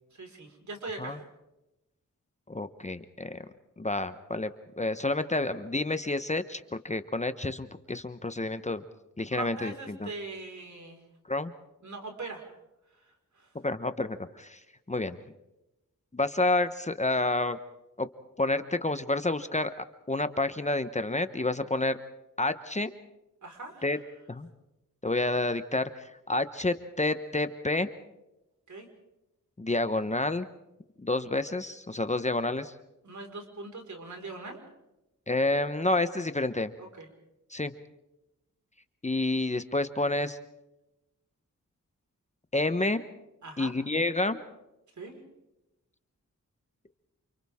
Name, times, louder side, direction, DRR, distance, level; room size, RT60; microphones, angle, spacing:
voice 1, 0.1-1.2 9.3-11.0 11.8-12.5 12.9-13.5 23.4-24.0 28.7-28.9 33.0-34.6 36.8-37.1 43.4-43.7 45.0-45.2, right 3 dB, 65° right, 3 dB, 5.0 m, -41 dB
voice 2, 2.5-3.4 3.8-4.5 4.8-8.8 9.2-10.1 11.3-11.5 13.6-14.6 14.9-15.2 16.1-17.6 18.0-18.1 18.4-22.0 22.4-22.9 23.8-24.0 24.3-24.5 25.0-27.9 29.6-30.5 31.0-32.7 35.3-36.7 37.5-37.7 39.0-40.4 42.5-43.0 43.6-44.4, left 2 dB, 20° left, 10 dB, 1.0 m, -29 dB
29.5 x 28.0 x 3.7 m, 0.93 s
wide cardioid pair, 85°, 32 cm